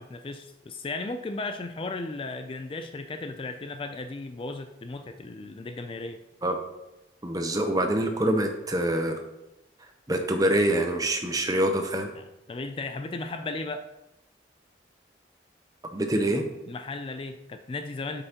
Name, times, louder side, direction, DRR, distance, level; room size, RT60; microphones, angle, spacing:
voice 1, 0.0-6.2 12.2-13.9 16.7-18.2, left 3 dB, 30° left, 7 dB, 0.3 m, -35 dB
voice 2, 7.2-9.2 10.1-12.1 15.9-16.4, right 1 dB, 20° right, 5 dB, 0.7 m, -25 dB
8.0 x 5.5 x 2.9 m, 0.93 s
head